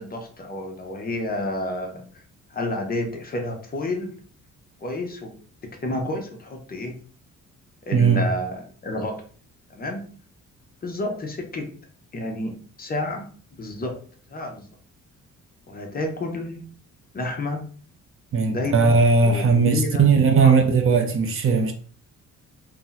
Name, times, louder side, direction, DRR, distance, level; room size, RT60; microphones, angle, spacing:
voice 1, 0.0-2.0 2.5-4.1 4.8-5.3 5.8-6.9 7.9-9.2 9.8-10.1 10.8-11.7 12.1-13.3 13.6-14.0 14.3-14.6 15.7-16.6 17.1-17.6 18.5-18.9 19.2-20.1 20.4-20.6, left 1 dB, 30° left, 0.6 m, -30 dB
voice 2, 7.9-8.2 18.3-21.7, right 5 dB, 45° right, 0.5 m, -18 dB
2.8 x 2.0 x 3.8 m
cardioid pair, 125°, 30 cm